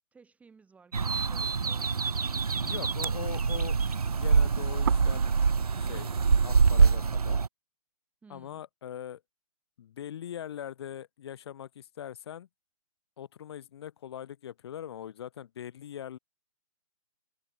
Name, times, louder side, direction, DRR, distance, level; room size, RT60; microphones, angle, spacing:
voice 1, 0.1-2.4 8.2-8.6, right 5 dB, 5° right, 3.4 m, -57 dB
sound 1, 0.9-7.5, right 5 dB, 80° right, 0.5 m, -25 dB
sound 2, 1.8-7.0, right 11 dB, 40° right, 0.7 m, -44 dB
voice 2, 2.6-3.8 4.1-5.3 5.8-6.1 6.4-7.4 8.3-9.2 9.8-12.5 13.2-16.2, left 10 dB, 45° left, 1.6 m, -41 dB
figure-of-eight pair, 130°, 19 cm